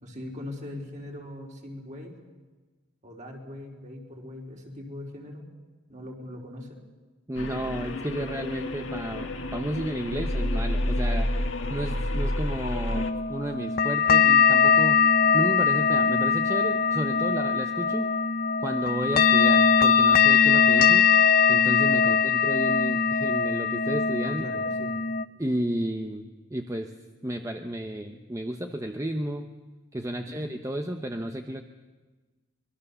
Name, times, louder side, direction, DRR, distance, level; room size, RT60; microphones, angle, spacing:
voice 1, 0.0-2.1 3.0-5.5 5.9-6.8 21.9-22.2 24.2-25.0 30.1-30.4, left 1 dB, 40° right, 0 dB, 4.2 m, -41 dB
voice 2, 7.3-11.3 11.7-15.0 15.3-18.1 18.6-21.1 21.5-24.4 25.4-26.2 26.5-26.9 27.2-29.5 29.9-31.6, right 1 dB, 15° right, 5 dB, 0.9 m, -32 dB
sound 1, 7.4-13.1, left 1 dB, 70° left, 1.7 m, -29 dB
sound 2, 12.9-25.2, left 6 dB, 45° left, 0.7 m, -21 dB
25.0 x 21.5 x 7.0 m, 1.3 s
head